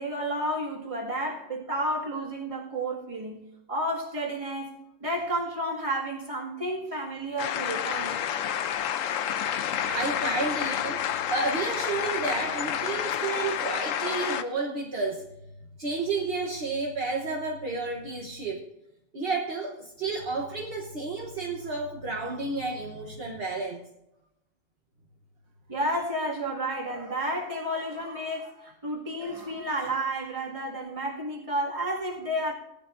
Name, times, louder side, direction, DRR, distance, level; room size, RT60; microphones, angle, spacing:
voice 1, 0.0-3.4 3.7-8.3 25.7-32.5, right 1 dB, 25° right, 2.1 m, -31 dB
sound 1, 7.4-14.4, left 9 dB, 85° left, 1.0 m, -29 dB
voice 2, 9.5-15.3 15.8-18.7 19.1-23.8, right 3 dB, 50° right, 1.3 m, -31 dB
17.5 x 11.0 x 2.5 m
omnidirectional pair, 1.3 m